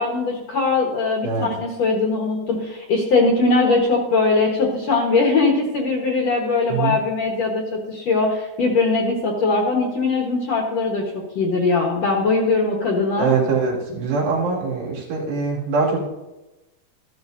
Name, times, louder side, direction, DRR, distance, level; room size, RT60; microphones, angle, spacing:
voice 1, 0.0-13.4, left 3 dB, 65° left, -2 dB, 1.7 m, -21 dB
voice 2, 13.2-16.1, right 4 dB, 85° right, -4 dB, 4.5 m, -22 dB
14.5 x 12.0 x 2.6 m, 1.0 s
omnidirectional pair, 4.8 m